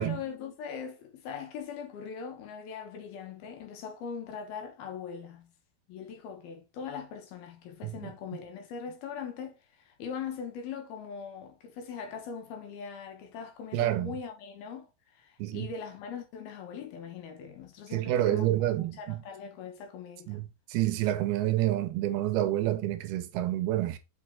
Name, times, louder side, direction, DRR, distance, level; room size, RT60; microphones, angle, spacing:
voice 1, 0.0-5.5 5.9-20.4, left 6 dB, 75° left, 3.0 m, -41 dB
voice 2, 13.7-14.1 15.4-15.7 17.9-19.2 20.3-24.0, right 14 dB, 80° right, 2.6 m, -28 dB
6.2 x 6.0 x 3.5 m
omnidirectional pair, 4.8 m